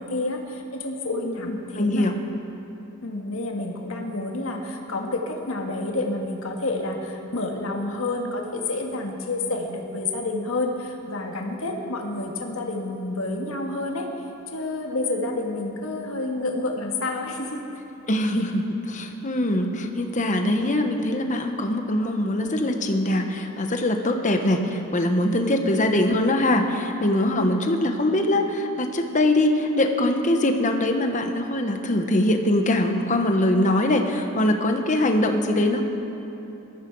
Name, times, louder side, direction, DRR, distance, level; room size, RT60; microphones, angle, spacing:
voice 1, 0.0-2.1 3.0-14.1 14.5-17.6 27.4-27.8, left 2 dB, 70° left, 2 dB, 1.7 m, -29 dB
voice 2, 1.4-2.2 18.1-35.8, left 1 dB, 35° left, 5 dB, 1.1 m, -22 dB
20.5 x 14.0 x 4.7 m, 2.9 s
head